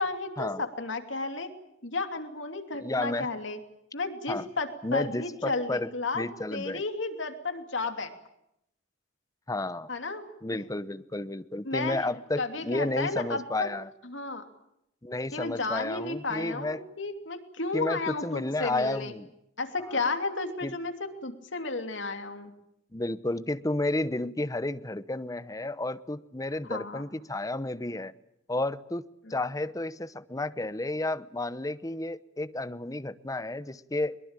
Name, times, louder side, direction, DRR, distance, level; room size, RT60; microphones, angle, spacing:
voice 1, 0.0-1.5 1.8-3.6 3.9-6.2 6.5-8.1 9.9-10.2 10.5-10.7 11.6-12.0 12.4-13.7 14.0-14.4 15.3-19.1 19.6-22.5 26.7-27.0 29.2-29.3, left 3 dB, 75° left, 6 dB, 2.9 m, -33 dB
voice 2, 2.8-3.3 4.3-4.5 4.8-5.9 6.1-6.8 9.5-9.9 10.4-13.9 15.0-16.8 17.7-19.3 19.8-20.0 20.6-20.8 22.9-28.1 28.5-29.0 29.3-34.2, left 2 dB, 20° left, 14 dB, 0.9 m, -32 dB
22.5 x 22.0 x 9.0 m, 0.79 s
head